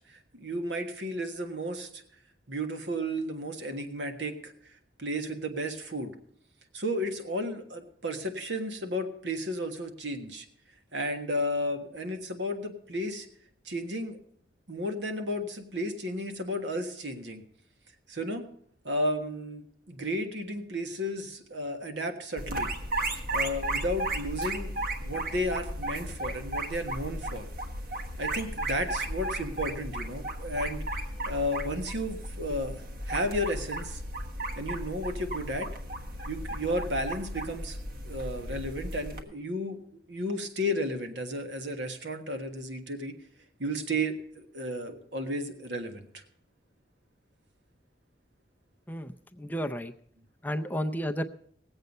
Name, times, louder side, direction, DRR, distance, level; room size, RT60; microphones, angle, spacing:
voice 1, 0.3-2.0 2.5-4.5 5.0-6.1 6.7-10.5 10.9-13.3 13.6-14.2 14.7-17.4 18.1-18.5 18.8-22.7 23.3-24.7 25.0-27.5 28.2-30.8 31.3-34.0 34.6-35.7 36.3-37.8 38.0-39.8 40.1-43.1 43.6-46.2, equal, 80° right, 6 dB, 1.5 m, -33 dB
sound 1, 22.4-39.2, right 1 dB, 50° right, 1.4 m, -35 dB
voice 2, 48.9-49.9 50.4-51.2, equal, 10° left, 5 dB, 0.5 m, -32 dB
19.0 x 8.0 x 5.4 m, 0.67 s
head